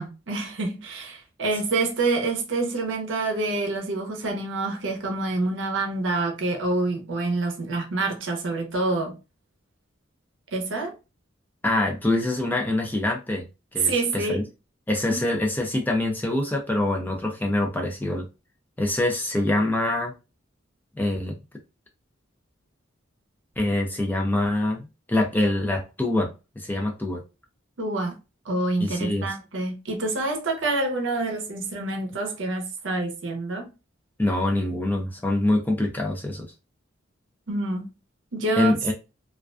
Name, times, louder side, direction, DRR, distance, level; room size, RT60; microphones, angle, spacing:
voice 1, 0.0-9.2 10.5-10.9 13.8-14.5 15.1-15.2 27.8-28.2 28.5-33.7 37.5-37.9 38.3-38.7, right 2 dB, 70° right, 0.6 m, -27 dB
voice 2, 11.6-13.5 13.7-14.4 14.9-18.3 18.8-20.1 21.0-21.4 23.6-24.8 25.1-27.2 28.8-29.3 34.2-36.5 38.6-38.9, left 1 dB, 10° left, 0.4 m, -25 dB
2.4 x 2.2 x 2.3 m
head